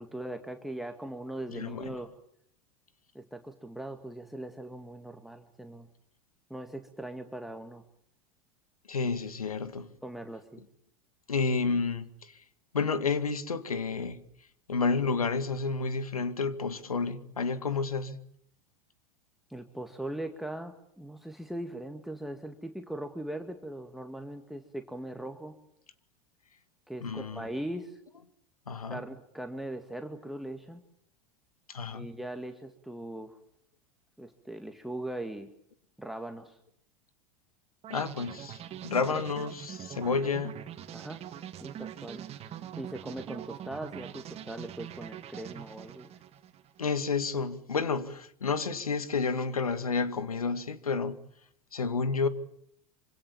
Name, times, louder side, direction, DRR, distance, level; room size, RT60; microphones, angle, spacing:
voice 1, 0.0-2.1 3.1-5.9 6.5-7.8 10.0-10.6 19.5-25.6 26.9-28.0 28.9-30.8 31.9-33.4 34.2-35.5 36.0-36.6 39.1-39.2 40.9-41.2 41.6-42.3 42.8-46.1, right 1 dB, ahead, 2.1 m, -40 dB
voice 2, 1.5-1.9 8.9-9.9 11.3-12.1 12.7-14.2 14.7-18.2 27.0-27.5 28.7-29.0 31.7-32.1 37.9-40.6 46.8-51.2 51.7-52.3, left 4 dB, 80° left, 2.1 m, -30 dB
sound 1, 37.8-46.9, right 10 dB, 35° right, 2.5 m, -43 dB
26.5 x 25.5 x 7.3 m
figure-of-eight pair, 85°, 18 cm